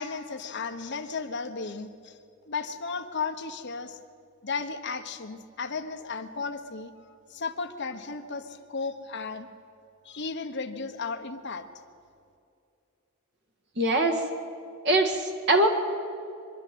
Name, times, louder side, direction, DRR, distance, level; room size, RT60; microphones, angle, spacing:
voice 1, 0.0-2.2 2.5-4.0 4.4-6.9 7.3-9.5 10.0-11.7, left 4 dB, 50° left, 6 dB, 1.1 m, -34 dB
voice 2, 13.8-14.2 14.8-15.7, right 1 dB, 50° right, 2 dB, 1.9 m, -22 dB
24.5 x 12.0 x 9.3 m, 2.5 s
head